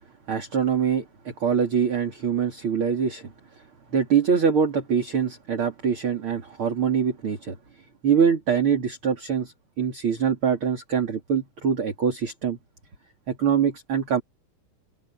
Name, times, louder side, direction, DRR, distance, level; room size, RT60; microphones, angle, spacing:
voice 1, 0.3-3.3 3.9-7.6 8.0-12.6 13.3-14.2, right 7 dB, 40° right, 3.5 m, -24 dB
open air
omnidirectional pair, 3.9 m